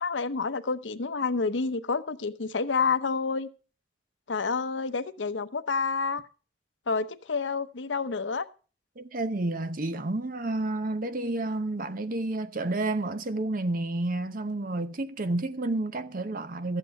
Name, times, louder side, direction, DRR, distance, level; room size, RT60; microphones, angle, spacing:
voice 1, 0.0-3.5 4.3-6.2 6.9-8.4, left 4 dB, 90° left, 0.8 m, -29 dB
voice 2, 9.0-16.8, right 2 dB, 50° right, 0.8 m, -30 dB
13.0 x 8.3 x 5.3 m
head